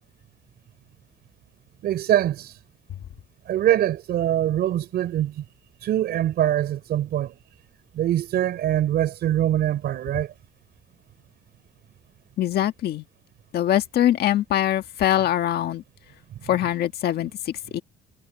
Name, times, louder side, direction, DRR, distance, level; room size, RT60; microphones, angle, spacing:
voice 1, 1.8-2.6 3.5-5.4 5.8-7.3 8.0-10.3, right 12 dB, 65° right, 4.2 m, -23 dB
voice 2, 12.4-13.0 13.5-15.8 16.4-17.8, left 12 dB, 60° left, 1.6 m, -23 dB
cardioid pair, 160°, 18 cm